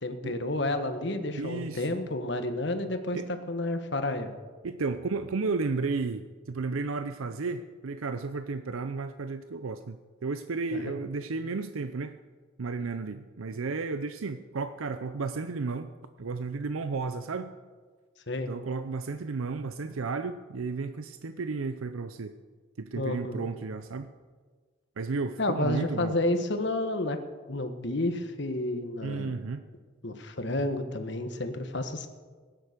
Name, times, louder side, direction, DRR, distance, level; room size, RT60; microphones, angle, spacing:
voice 1, 0.0-3.2 3.5-4.3 10.7-11.0 18.3-18.5 22.9-23.5 25.4-27.2 27.5-29.4 30.0-32.1, left 2 dB, 55° left, 7 dB, 1.4 m, -30 dB
voice 2, 1.3-1.9 3.1-3.3 4.6-12.1 12.6-15.9 16.2-17.5 18.5-22.3 22.8-24.1 25.0-26.1 29.0-29.7, right 4 dB, 85° right, 10 dB, 0.6 m, -33 dB
17.5 x 10.0 x 6.7 m, 1.5 s
head